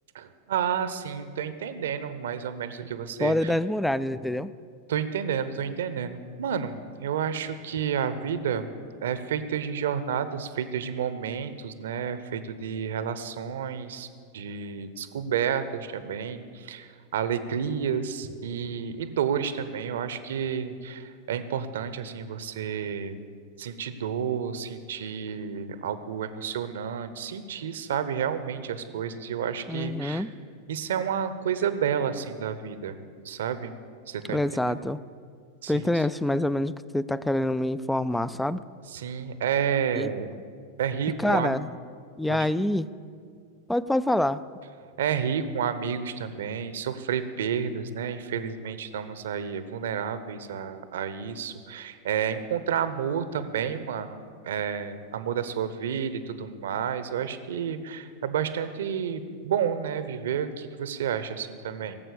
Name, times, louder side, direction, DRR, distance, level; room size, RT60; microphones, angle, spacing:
voice 1, 0.1-3.6 4.9-8.7 9.0-14.1 14.3-23.2 23.6-30.2 30.7-33.0 33.2-33.7 34.1-34.8 35.6-36.0 38.9-40.3 40.8-41.6 42.3-42.5 45.0-62.0, right 8 dB, 65° right, 12 dB, 0.9 m, -30 dB
voice 2, 3.2-4.5 29.7-30.3 34.3-35.0 35.7-38.6 39.9-40.1 41.2-41.7 42.2-42.9 43.7-44.4, left 1 dB, 5° left, 16 dB, 0.4 m, -26 dB
17.5 x 7.7 x 8.4 m, 2.1 s
figure-of-eight pair, 90°, 0 cm